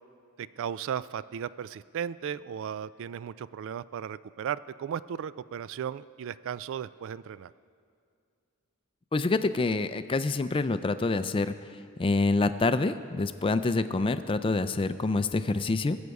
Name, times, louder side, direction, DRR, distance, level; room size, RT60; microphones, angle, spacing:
voice 1, 0.4-7.5, right 8 dB, 60° right, 17 dB, 0.3 m, -36 dB
voice 2, 9.1-11.5 12.0-16.0, left 3 dB, 25° left, 12 dB, 0.4 m, -26 dB
20.5 x 8.1 x 4.8 m, 2.4 s
head